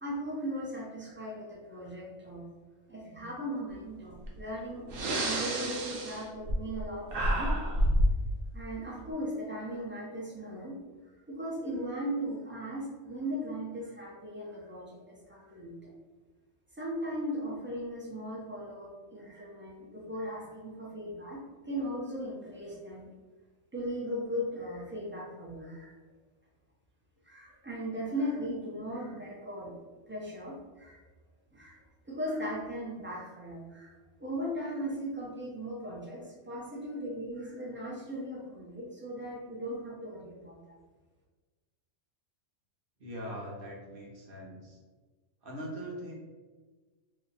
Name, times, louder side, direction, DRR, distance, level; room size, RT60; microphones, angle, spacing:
voice 1, 0.0-2.4 2.9-7.5 8.5-10.7 11.3-15.7 16.8-23.0 23.7-25.9 27.2-29.7 30.1-31.0 31.5-31.8 32.1-33.9 34.2-40.7, equal, 15° right, -5 dB, 0.3 m, -38 dB
Breathing, 4.2-4.4 4.9-6.8 7.1-8.2, equal, 85° right, 1.1 m, -28 dB
voice 2, 43.0-44.8 45.4-46.1, equal, 50° right, -2 dB, 0.8 m, -41 dB
2.7 x 2.1 x 4.0 m, 1.3 s
omnidirectional pair, 1.3 m